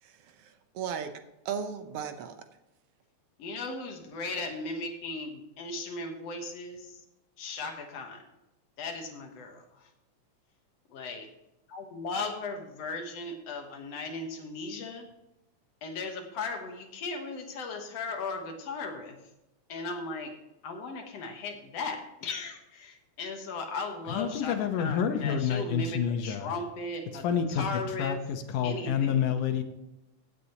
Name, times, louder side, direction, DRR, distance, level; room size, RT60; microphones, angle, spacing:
voice 1, 0.0-1.1 1.4-2.3, right 7 dB, 70° right, 7 dB, 1.4 m, -36 dB
voice 2, 3.4-7.0 7.4-8.2 8.8-9.9 10.9-11.3 11.7-15.1 15.8-19.2 19.7-20.3 20.6-28.2 28.6-29.3, left 3 dB, 60° left, 4 dB, 2.1 m, -37 dB
voice 3, 24.2-26.5 27.2-27.7 28.0-29.6, left 8 dB, 85° left, 5 dB, 2.6 m, -28 dB
16.0 x 8.5 x 2.9 m, 0.93 s
omnidirectional pair, 3.5 m